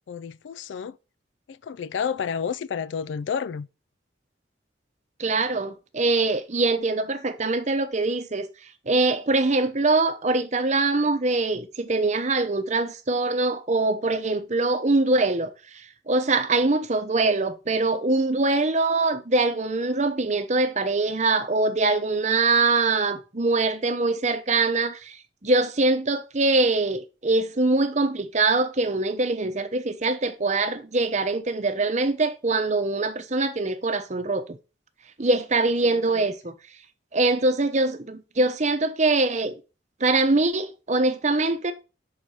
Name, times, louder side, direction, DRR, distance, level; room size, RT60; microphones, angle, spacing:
voice 1, 0.1-1.0 1.5-3.7 36.1-36.3, left 7 dB, 80° left, 0.4 m, -30 dB
voice 2, 5.2-8.5 8.9-15.5 16.1-34.6 35.2-36.5 37.1-39.5 40.0-41.7, right 3 dB, 40° right, 0.8 m, -23 dB
5.7 x 4.3 x 6.4 m
head